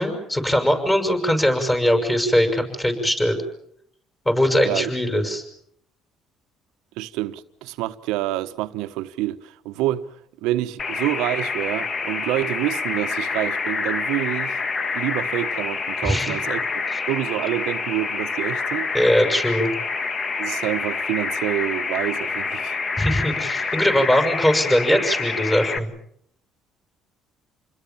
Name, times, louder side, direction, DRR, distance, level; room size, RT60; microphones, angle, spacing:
voice 1, 0.0-3.4 4.2-5.4 16.0-16.3 16.9-17.0 18.9-19.7 23.0-25.9, equal, 15° left, 6.6 m, -21 dB
voice 2, 7.0-10.1 10.4-14.6 14.9-18.9 20.4-22.8, right 15 dB, 85° right, 1.2 m, -27 dB
sound 1, 10.8-25.8, left 4 dB, 35° left, 1.6 m, -27 dB
28.5 x 21.0 x 7.2 m
cardioid pair, 110°, 0 cm